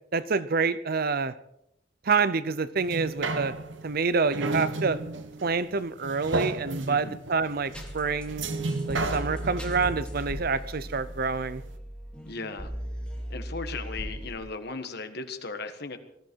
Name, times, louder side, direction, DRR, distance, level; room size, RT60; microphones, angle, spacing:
voice 1, 0.1-1.3 2.0-3.5 3.8-5.0 5.4-8.5 8.9-11.6, right 4 dB, 55° right, 15 dB, 0.7 m, -27 dB
sound 1, 2.8-11.3 11.7-11.8, right 2 dB, 80° right, 1.3 m, -33 dB
voice 2, 6.8-7.2 12.2-12.7 13.3-16.0, left 3 dB, 60° left, 8 dB, 1.6 m, -37 dB
sound 2, 7.7-14.4, equal, 5° left, 3.2 m, -38 dB
19.5 x 14.0 x 4.7 m, 0.78 s
head